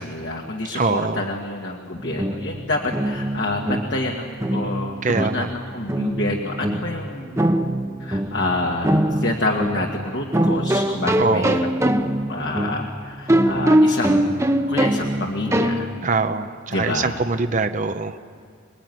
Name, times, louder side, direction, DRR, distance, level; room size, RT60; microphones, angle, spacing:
voice 1, 0.0-7.6 8.0-15.9 16.7-17.2, left 2 dB, 60° left, 0 dB, 2.1 m, -28 dB
voice 2, 0.7-1.2 5.0-5.5 11.2-11.6 16.0-18.2, right 3 dB, 40° right, 8 dB, 0.8 m, -23 dB
sound 1, 2.0-16.2, right 1 dB, 15° right, 0.9 m, -23 dB
26.5 x 21.0 x 9.4 m, 2.1 s
head